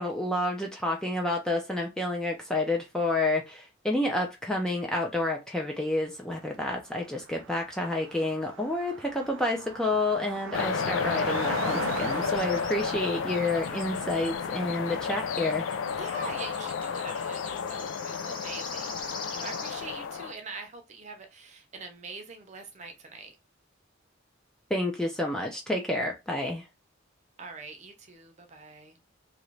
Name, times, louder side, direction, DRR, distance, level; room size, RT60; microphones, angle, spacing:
voice 1, 0.0-15.6 24.7-26.6, left 2 dB, 5° left, 0.5 m, -29 dB
Car passing by, 6.4-6.5 6.7-17.7, right 6 dB, 85° right, 0.4 m, -41 dB
sound 1, 10.5-20.3, left 7 dB, 70° left, 0.3 m, -32 dB
sound 2, 12.1-12.7 13.5-14.4 14.7-19.8, left 3 dB, 25° left, 0.9 m, -44 dB
voice 2, 15.9-18.9 19.1-23.3 27.4-29.0, right 3 dB, 35° right, 0.7 m, -43 dB
2.9 x 2.5 x 3.1 m
head